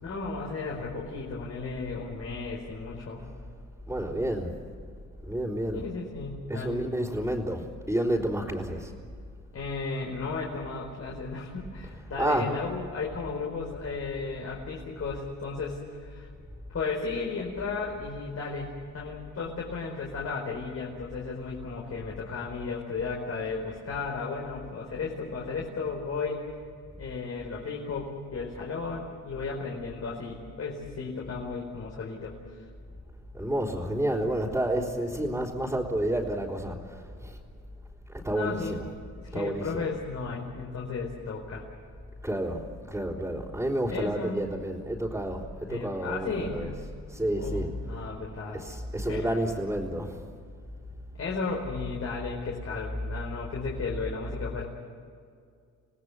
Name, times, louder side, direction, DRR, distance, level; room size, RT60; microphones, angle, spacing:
voice 1, 0.0-3.2 5.7-6.8 9.5-16.3 16.7-26.4 27.0-32.6 38.3-38.8 39.2-41.7 43.9-44.4 45.7-46.7 47.4-48.6 49.0-49.3 51.1-54.6, left 4 dB, 50° left, -2 dB, 4.8 m, -34 dB
voice 2, 3.9-4.6 5.2-5.9 6.5-8.9 12.2-12.5 33.3-37.3 38.1-39.0 39.3-39.9 42.2-48.0 48.5-50.2, right 1 dB, 5° right, -6 dB, 4.0 m, -30 dB
27.5 x 18.0 x 7.9 m, 2.2 s
cardioid pair, 90°, 30 cm